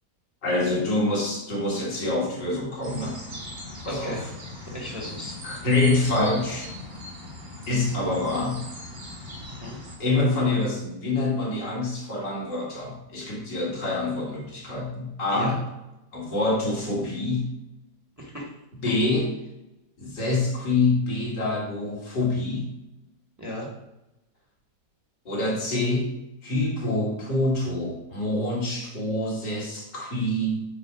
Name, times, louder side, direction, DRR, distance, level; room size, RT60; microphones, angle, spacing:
voice 1, 0.4-3.2 3.8-4.2 5.4-6.7 7.7-8.6 10.0-15.6 16.1-17.5 18.8-19.3 20.0-22.7 25.3-26.1 26.4-30.6, left 2 dB, 90° left, -4 dB, 2.7 m, -26 dB
sound 1, 2.8-10.0, left 1 dB, 30° right, 1.6 m, -40 dB
voice 2, 3.9-4.3 4.7-5.4 9.5-9.8 15.3-15.6 18.2-18.5 23.4-23.7, left 1 dB, 10° right, -2 dB, 1.3 m, -35 dB
6.8 x 4.2 x 4.9 m, 0.93 s
omnidirectional pair, 1.8 m